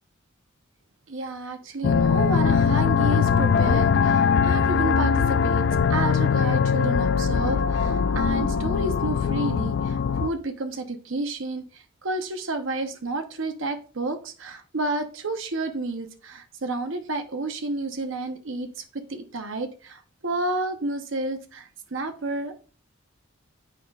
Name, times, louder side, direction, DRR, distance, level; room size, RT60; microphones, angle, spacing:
voice 1, 1.1-22.6, right 2 dB, 70° right, 7 dB, 0.8 m, -31 dB
sound 1, 1.8-10.3, left 6 dB, 55° left, 0.3 m, -21 dB
8.3 x 5.5 x 2.4 m, 0.40 s
head